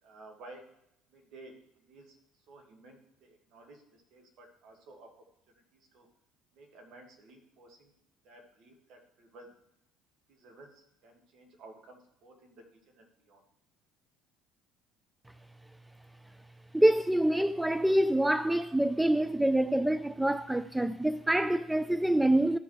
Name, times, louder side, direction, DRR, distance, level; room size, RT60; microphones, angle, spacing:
voice 1, 0.0-0.7 1.1-6.1 6.5-7.9 8.2-9.6 10.3-13.4, right 2 dB, 55° right, 1.9 m, -54 dB
voice 2, 16.7-22.6, right 1 dB, 5° right, 0.3 m, -26 dB
14.5 x 5.3 x 3.2 m
hypercardioid pair, 60°, 0 cm